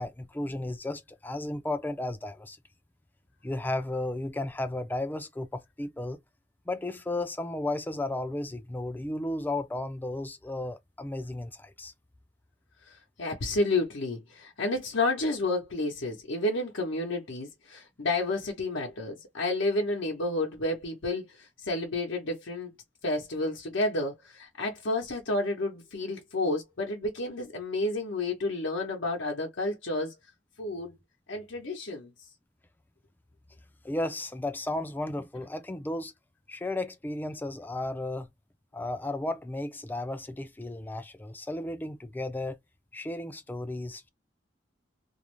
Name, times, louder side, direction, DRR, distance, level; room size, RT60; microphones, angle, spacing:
voice 1, 0.0-2.6 3.4-6.2 6.7-11.9 33.8-36.1 36.5-38.3 38.7-42.6 42.9-44.1, left 2 dB, 10° left, 0.3 m, -34 dB
voice 2, 12.8-22.7 23.0-30.1 30.6-31.0 31.3-32.1, left 2 dB, 90° left, 0.7 m, -30 dB
2.4 x 2.0 x 2.9 m
head